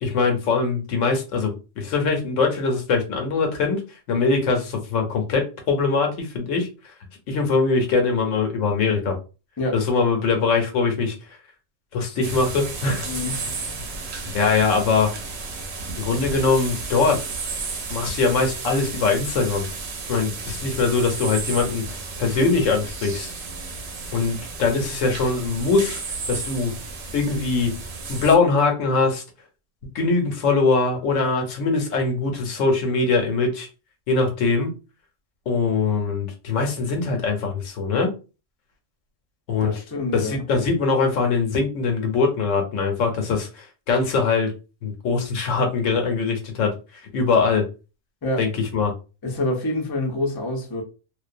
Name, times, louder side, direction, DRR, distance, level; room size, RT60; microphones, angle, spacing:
voice 1, 0.0-3.8 4.1-6.7 7.3-9.2 9.7-11.2 11.9-13.1 14.2-15.1 16.0-17.2 17.9-19.7 20.1-23.3 24.1-26.0 26.3-26.8 27.1-27.8 28.1-29.2 29.9-33.7 34.1-34.7 35.5-38.1 39.5-39.7 40.1-44.5 44.8-46.7 47.1-47.7 48.4-48.9, left 4 dB, 85° left, 1.1 m, -22 dB
sound 1, 12.2-28.4, right 4 dB, 65° right, 0.8 m, -33 dB
voice 2, 13.0-13.5 39.6-40.4 48.2-48.4 49.2-50.8, left 1 dB, 35° left, 0.4 m, -26 dB
2.5 x 2.1 x 2.5 m
omnidirectional pair, 1.3 m